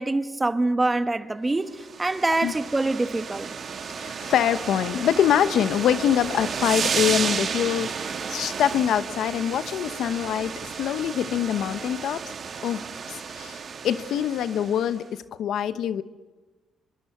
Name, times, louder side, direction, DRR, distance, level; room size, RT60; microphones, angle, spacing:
voice 1, 0.0-3.5, right 2 dB, 20° right, 1.4 m, -25 dB
sound 1, 1.7-14.9, right 6 dB, 50° right, 2.0 m, -32 dB
voice 2, 4.0-12.2 12.6-12.8 13.1-16.0, left 10 dB, 75° left, 1.1 m, -24 dB
25.5 x 23.5 x 8.0 m
cardioid pair, 90°, 0 cm